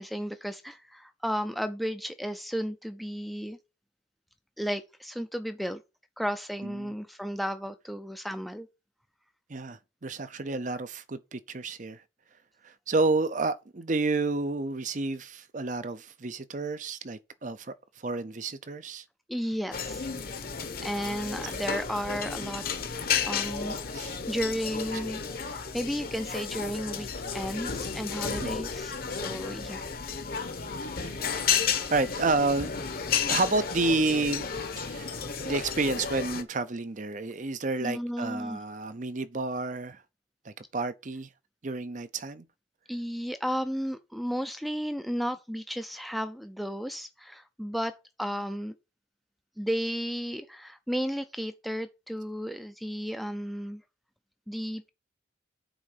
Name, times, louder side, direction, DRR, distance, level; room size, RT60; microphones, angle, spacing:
voice 1, 0.0-3.6 4.6-5.8 6.2-8.7 19.3-20.0 20.8-22.6 23.3-29.8 37.8-38.6 42.9-48.8 49.6-53.8 54.5-54.9, equal, ahead, 0.5 m, -33 dB
voice 2, 6.6-6.9 9.5-12.0 12.6-19.0 20.8-20.9 22.4-22.5 23.9-24.2 28.4-28.6 31.0-31.2 31.9-32.7 33.3-34.5 34.8-35.2 35.4-40.0 40.4-41.3 41.6-42.5, right 3 dB, 40° right, 0.6 m, -30 dB
sound 1, 19.7-36.4, left 6 dB, 50° left, 1.0 m, -32 dB
8.9 x 3.9 x 6.6 m
head